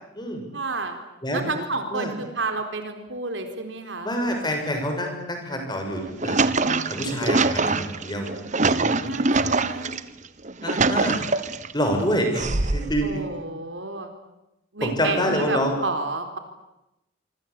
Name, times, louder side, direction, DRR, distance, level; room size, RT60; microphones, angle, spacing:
voice 1, 0.5-1.0 1.3-4.1 6.6-7.5 8.9-9.9 13.0-14.1 14.7-16.4, right 3 dB, 70° right, 6 dB, 4.4 m, -31 dB
voice 2, 4.0-6.5 6.9-8.3 8.8-9.2 10.6-11.2 11.7-13.2 14.8-15.7, equal, 25° left, 3 dB, 6.8 m, -26 dB
sound 1, 5.9-10.0 10.4-11.7 12.3-13.1, right 3 dB, 40° right, 1.3 m, -24 dB
27.0 x 24.5 x 8.6 m, 0.91 s
head